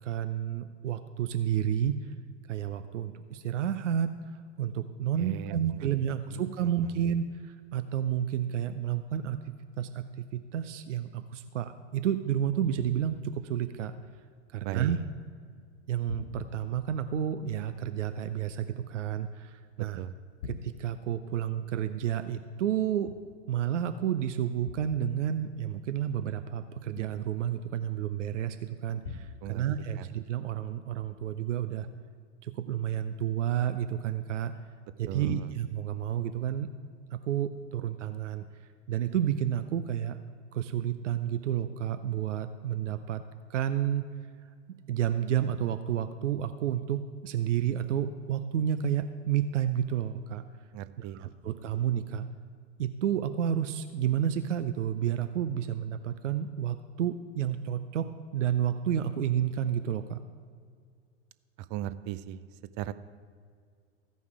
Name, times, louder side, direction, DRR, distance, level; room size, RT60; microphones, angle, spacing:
voice 1, 0.0-2.1 2.5-10.1 10.3-13.9 14.5-15.0 15.9-20.0 20.5-23.1 23.5-31.9 32.4-34.5 35.0-36.7 37.1-38.4 38.9-40.2 40.5-43.2 43.5-44.0 44.9-50.4 51.0-52.3 52.8-58.1 58.3-60.2, right 10 dB, 80° right, 10 dB, 0.6 m, -30 dB
voice 2, 5.2-5.9 6.3-6.9 14.6-15.0 20.0-20.2 29.4-29.6 30.0-30.1 35.1-35.5 50.7-51.5 61.7-62.5 62.8-62.9, right 12 dB, 30° right, 14 dB, 0.4 m, -38 dB
sound 1, 12.7-15.0 15.3-15.8 16.1-19.8 20.2-23.8 24.6-28.2 29.0-30.6 30.9-31.4, left 5 dB, 85° left, 0.6 m, -49 dB
14.5 x 5.4 x 4.8 m, 2.1 s
hypercardioid pair, 100°, 36 cm